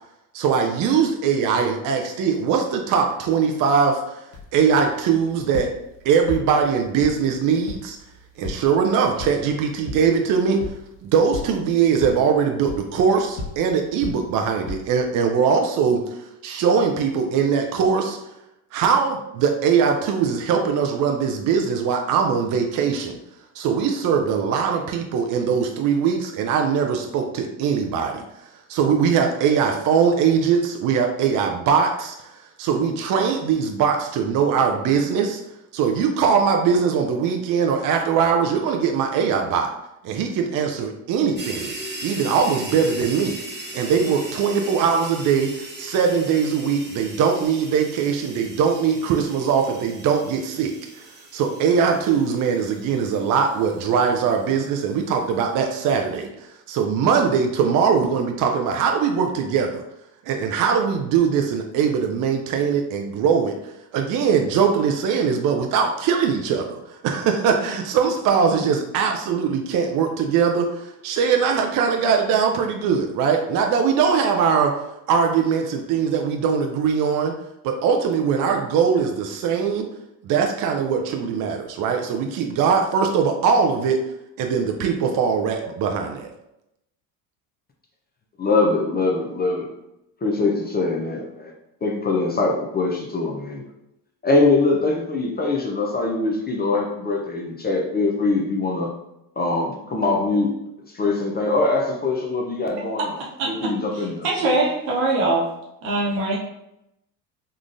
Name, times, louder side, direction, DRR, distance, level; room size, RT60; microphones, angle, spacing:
voice 1, 0.3-4.2 4.5-5.7 6.0-8.0 8.4-10.6 11.0-18.2 18.7-23.2 23.6-28.2 28.7-32.3 32.6-35.4 35.7-39.7 40.0-41.7 42.0-43.4 43.7-51.0 51.3-56.3 56.7-59.8 60.2-63.6 63.9-74.8 75.1-77.3 77.6-79.9 80.2-84.0 84.4-86.3, right 6 dB, 45° right, 4 dB, 0.4 m, -21 dB
sound 1, 4.3-15.1, left 2 dB, 75° left, 0.8 m, -38 dB
sound 2, 41.4-55.0, right 1 dB, 20° right, 0.8 m, -38 dB
voice 2, 88.4-89.7 90.2-91.5 91.8-93.6 94.2-98.9 99.4-100.5 100.9-103.2 103.5-104.5, left 3 dB, 20° left, 0 dB, 0.4 m, -22 dB
voice 3, 103.4-105.4 105.8-106.4, right 2 dB, 80° right, -3 dB, 1.1 m, -23 dB
3.6 x 2.3 x 2.5 m, 0.85 s
hypercardioid pair, 75°, 50 cm